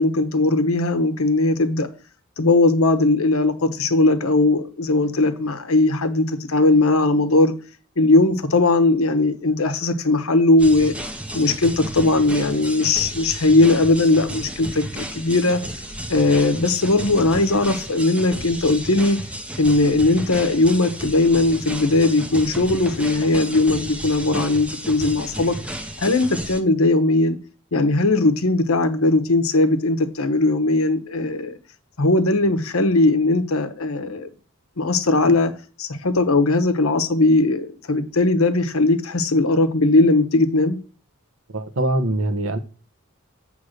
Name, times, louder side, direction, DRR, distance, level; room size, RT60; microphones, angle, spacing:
voice 1, 0.0-1.9 2.4-7.5 8.0-10.9 11.3-15.6 16.1-19.2 19.6-25.6 26.0-27.4 27.7-31.6 32.0-34.3 34.8-35.5 35.8-40.8, left 2 dB, 85° left, 1.1 m, -19 dB
sound 1, 10.6-26.6, right 1 dB, 5° right, 0.7 m, -33 dB
voice 2, 41.5-42.6, right 1 dB, 70° right, 1.0 m, -23 dB
7.7 x 3.4 x 6.5 m
head